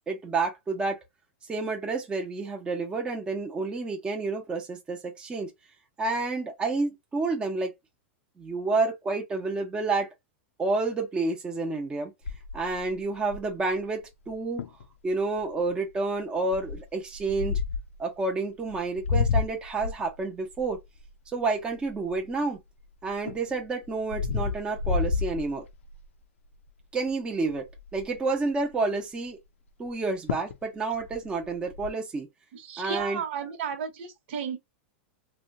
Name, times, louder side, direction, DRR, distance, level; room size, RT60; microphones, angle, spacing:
voice 1, 0.1-1.0 1.4-5.5 6.0-7.7 8.4-10.1 10.6-12.1 12.5-14.6 15.0-17.6 18.0-20.8 21.3-22.6 23.0-25.6 26.9-27.7 27.9-29.4 29.8-32.3 32.8-33.2, right 3 dB, 15° right, 0.7 m, -29 dB
sound 1, 12.2-13.7 14.3-14.4 14.6-14.8 15.4-15.7 16.5-18.0 18.7-22.6 23.0-26.1 26.5-26.8 27.1-27.2 27.4-28.2 29.9-30.0 30.3-30.6 30.9-31.9, left 5 dB, 90° left, 0.4 m, -31 dB
voice 2, 32.5-34.6, right 6 dB, 65° right, 1.0 m, -33 dB
2.9 x 2.2 x 2.6 m
supercardioid pair, 145°, 7 cm